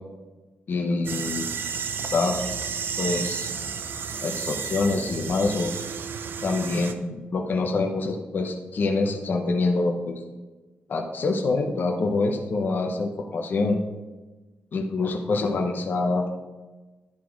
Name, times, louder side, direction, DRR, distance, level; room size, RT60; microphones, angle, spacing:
voice 1, 0.7-1.5 2.1-2.5 3.0-3.5 4.2-5.7 6.4-10.1 10.9-13.8 14.7-16.3, left 3 dB, 55° left, 2 dB, 0.8 m, -25 dB
sound 1, 1.0-6.9, right 6 dB, 65° right, 0.6 m, -32 dB
11.5 x 4.2 x 4.7 m, 1.2 s
cardioid pair, 105°, 4 cm